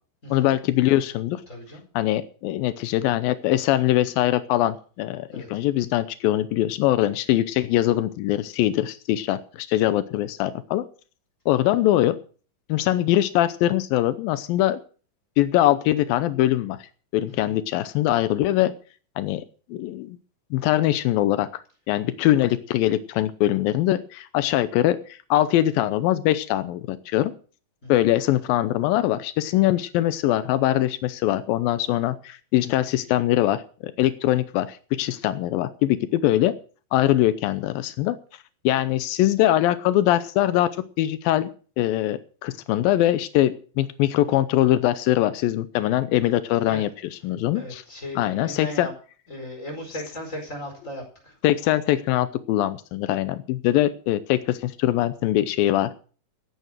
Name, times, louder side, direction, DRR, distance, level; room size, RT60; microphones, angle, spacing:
voice 1, 0.3-1.4 2.0-10.8 11.5-12.2 12.7-14.8 15.4-16.8 17.1-18.7 19.2-19.4 19.7-20.2 20.5-21.6 21.9-27.3 27.9-36.5 36.9-38.2 38.6-40.7 41.0-41.5 41.8-47.8 48.2-48.9 51.4-55.9, left 14 dB, 85° left, 13 dB, 2.5 m, -22 dB
voice 2, 1.5-1.8 5.3-5.6 17.4-17.5 27.8-28.1 46.7-46.8 47.5-48.9 49.3-51.3, left 1 dB, 20° left, 3 dB, 4.9 m, -37 dB
16.0 x 9.2 x 6.2 m, 0.40 s
omnidirectional pair, 4.0 m